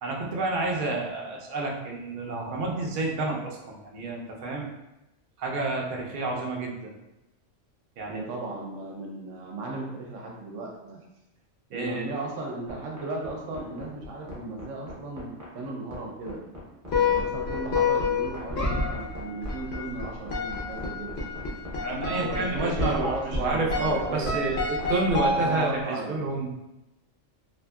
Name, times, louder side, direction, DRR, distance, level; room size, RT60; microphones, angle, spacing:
voice 1, 0.0-4.7 5.4-6.9 8.0-8.2 11.7-12.1 21.8-26.5, right 2 dB, 55° right, -2 dB, 0.6 m, -29 dB
voice 2, 8.1-11.0 11.7-16.4 17.0-21.2 22.1-24.4 25.3-26.3, right 2 dB, 75° right, -1 dB, 0.9 m, -36 dB
sound 1, 12.7-25.5, left 1 dB, 20° right, 0.6 m, -42 dB
sound 2, 16.9-25.9, left 3 dB, 60° left, 0.8 m, -29 dB
2.9 x 2.6 x 2.2 m, 0.94 s
omnidirectional pair, 1.3 m